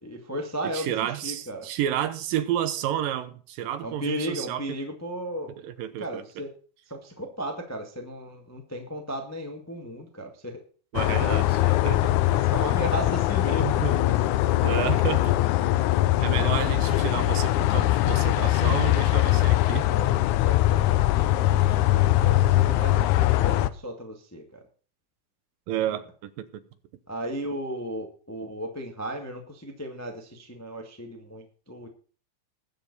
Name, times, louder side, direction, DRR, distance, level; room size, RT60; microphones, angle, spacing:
voice 1, 0.0-1.7 3.8-6.5 6.9-10.6 11.2-11.3 12.3-14.0 19.8-20.2 20.4-24.6 27.1-31.9, equal, 15° left, 0.5 m, -35 dB
voice 2, 0.6-4.6 5.6-6.2 10.9-12.1 13.6-14.0 14.6-15.4 16.2-19.9 25.7-26.6, right 11 dB, 75° right, 2.5 m, -30 dB
sound 1, 10.9-23.7, left 15 dB, 90° left, 1.7 m, -22 dB
20.5 x 7.2 x 4.1 m
omnidirectional pair, 4.2 m